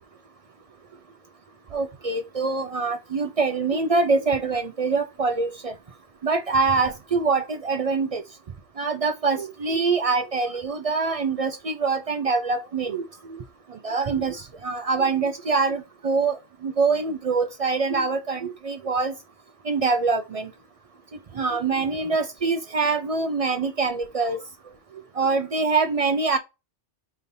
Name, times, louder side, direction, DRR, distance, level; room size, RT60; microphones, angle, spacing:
voice 1, 1.7-5.7 6.2-8.2 8.8-13.4 13.7-16.4 16.6-19.1 19.7-20.5 21.3-24.4 25.2-26.4, right 4 dB, 55° right, 0.4 m, -24 dB
5.2 x 3.1 x 2.6 m
omnidirectional pair, 1.2 m